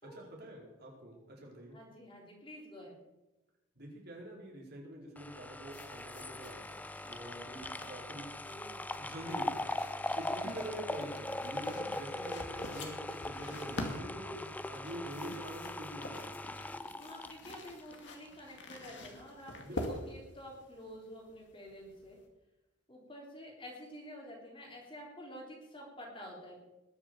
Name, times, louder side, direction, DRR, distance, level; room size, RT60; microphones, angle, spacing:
voice 1, 0.1-1.8 3.7-8.3 9.0-9.6 10.1-16.4 19.6-20.0, right 1 dB, 50° right, -2 dB, 4.6 m, -46 dB
voice 2, 1.7-3.0 8.4-8.8 17.0-22.2 22.9-26.6, equal, 25° left, -2 dB, 3.7 m, -49 dB
sound 1, 5.2-18.4 18.7-18.8, left 2 dB, 10° left, 0.4 m, -40 dB
sound 2, 5.7-22.2, left 1 dB, 60° left, 2.3 m, -47 dB
20.5 x 7.4 x 7.0 m, 1.0 s
head